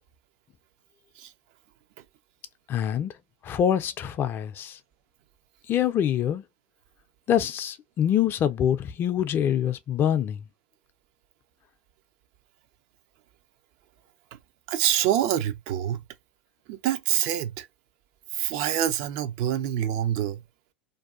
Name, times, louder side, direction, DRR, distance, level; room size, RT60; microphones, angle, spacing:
voice 1, 2.7-3.1 3.4-4.8 5.7-6.4 7.3-10.4, left 10 dB, 35° left, 0.4 m, -25 dB
voice 2, 14.7-16.0 16.7-17.7 18.3-20.4, right 11 dB, 55° right, 0.5 m, -26 dB
2.6 x 2.3 x 2.4 m
hypercardioid pair, 90°, 6 cm